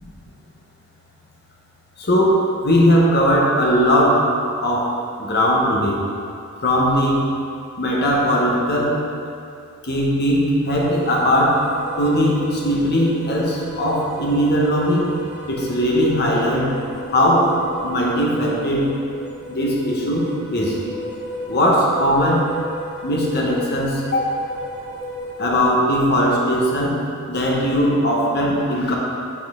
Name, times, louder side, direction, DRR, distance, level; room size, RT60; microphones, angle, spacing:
voice 1, 2.0-4.3 4.6-6.0 6.6-7.2 7.8-9.0 9.8-11.6 12.0-15.1 15.5-16.7 17.1-17.6 17.8-18.9 19.5-20.8 21.5-22.5 23.0-24.4 25.4-29.0, equal, 45° left, -3 dB, 1.1 m, -19 dB
sound 1, 10.6-25.6, equal, 5° right, 1.0 m, -35 dB
9.0 x 4.2 x 3.6 m, 2.5 s
head